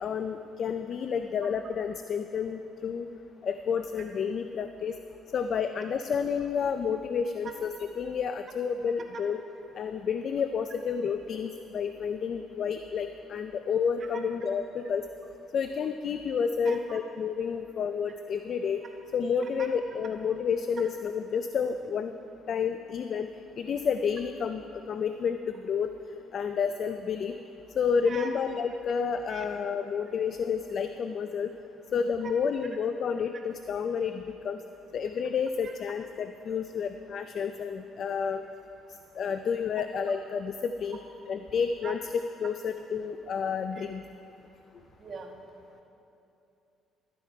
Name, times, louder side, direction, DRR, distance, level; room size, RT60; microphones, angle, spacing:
voice 1, 0.0-3.1 3.4-4.9 5.3-9.4 9.7-15.1 15.5-18.8 19.1-22.1 22.5-23.3 23.6-25.9 26.3-27.4 27.8-31.5 31.9-34.6 34.9-38.4 39.2-41.0 41.3-42.1 42.4-44.0, left 6 dB, 55° left, 9 dB, 0.4 m, -30 dB
voice 2, 16.6-17.0 19.6-19.7 28.1-28.3 29.3-29.4 35.6-35.7 41.8-41.9 43.8-43.9 45.0-45.3, right 5 dB, 40° right, 2 dB, 1.3 m, -41 dB
12.5 x 9.9 x 4.6 m, 2.8 s
cardioid pair, 100°, 0 cm